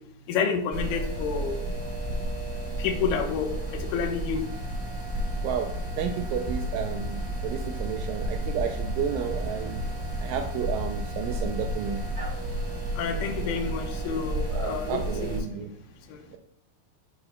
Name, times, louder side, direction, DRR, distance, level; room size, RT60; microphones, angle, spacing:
voice 1, 0.3-1.6 2.8-4.4 12.9-15.4, left 6 dB, 70° left, 3 dB, 2.2 m, -29 dB
sound 1, 0.7-15.4, right 1 dB, 35° right, 0.3 m, -32 dB
voice 2, 5.4-9.9 10.2-12.0 14.5-15.7 16.3-16.4, right 8 dB, 80° right, 4 dB, 2.0 m, -32 dB
12.5 x 5.8 x 2.2 m, 0.72 s
omnidirectional pair, 4.5 m